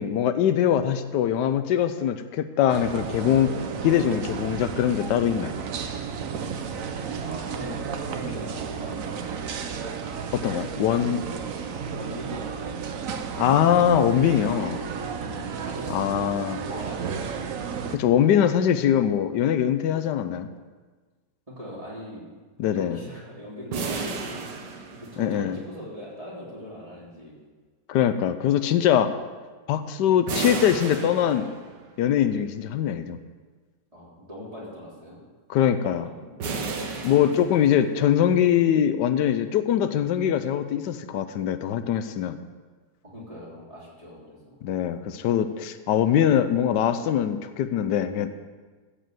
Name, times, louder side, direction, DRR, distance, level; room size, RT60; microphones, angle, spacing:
voice 1, 0.0-3.5 3.8-5.6 10.3-11.2 13.4-14.8 15.9-16.6 17.9-20.5 22.6-23.0 25.2-25.6 27.9-29.1 29.7-31.5 32.0-33.2 35.5-36.1 37.0-42.4 44.6-48.3, left 9 dB, 90° left, 10 dB, 1.3 m, -22 dB
sound 1, 2.7-18.0, right 6 dB, 60° right, 1.1 m, -33 dB
voice 2, 7.2-9.6 11.9-13.1 15.2-17.6 21.5-22.2 22.7-27.3 33.9-35.2 35.8-35.9 36.2-36.8 43.0-44.6, equal, 20° right, -6 dB, 3.2 m, -41 dB
sound 2, 23.7-25.6 30.3-31.9 36.4-38.1, right 4 dB, 90° right, 1.7 m, -33 dB
14.0 x 5.1 x 7.7 m, 1.4 s
omnidirectional pair, 1.8 m